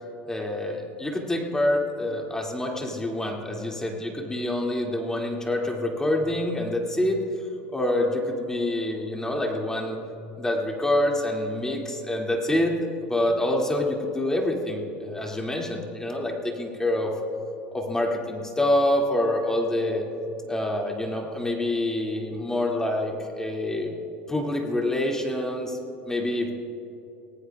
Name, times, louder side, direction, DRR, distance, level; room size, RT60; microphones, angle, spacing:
voice 1, 0.3-7.2 7.7-10.0 10.3-12.8 13.1-17.1 17.7-20.0 20.4-24.0 24.3-25.8 26.1-26.5, left 1 dB, 10° left, 0 dB, 2.5 m, -26 dB
25.0 x 18.0 x 2.4 m, 2.8 s
hypercardioid pair, 90°, 6 cm